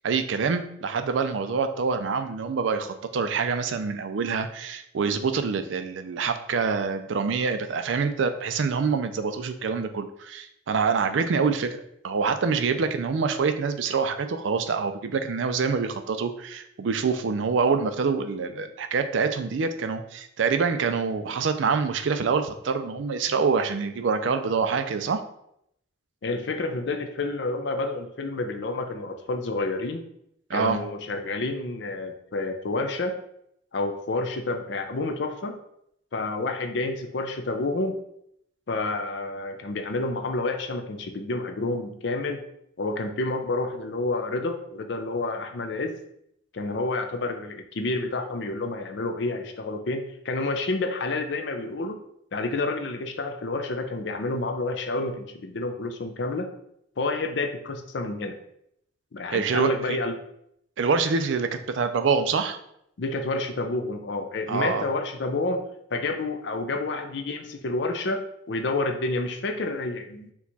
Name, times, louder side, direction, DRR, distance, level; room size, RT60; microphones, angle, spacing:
voice 1, 0.0-25.2 30.5-30.8 59.3-60.0 60.8-62.6 64.5-64.9, right 5 dB, 70° right, 9 dB, 0.4 m, -26 dB
voice 2, 26.2-30.0 30.5-33.2 33.7-35.6 36.1-38.0 38.7-42.4 42.8-45.9 46.5-52.0 52.3-56.5 57.0-58.4 59.1-60.1 63.0-65.7 65.9-70.3, left 2 dB, 60° left, 6 dB, 0.5 m, -29 dB
4.6 x 2.3 x 4.0 m, 0.74 s
head